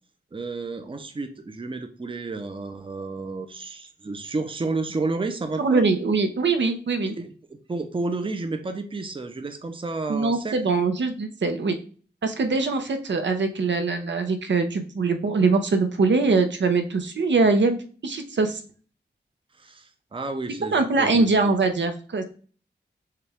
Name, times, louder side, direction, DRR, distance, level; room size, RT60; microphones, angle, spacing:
voice 1, 0.3-5.9 7.2-7.3 7.7-10.6 19.6-19.8 20.1-21.5, right 3 dB, 30° right, 7 dB, 0.5 m, -31 dB
voice 2, 5.6-7.1 10.1-11.8 12.2-17.8 18.0-18.6 20.7-22.2, right 3 dB, 85° right, 7 dB, 0.7 m, -22 dB
6.7 x 2.3 x 3.4 m, 0.41 s
wide cardioid pair, 105°, 18 cm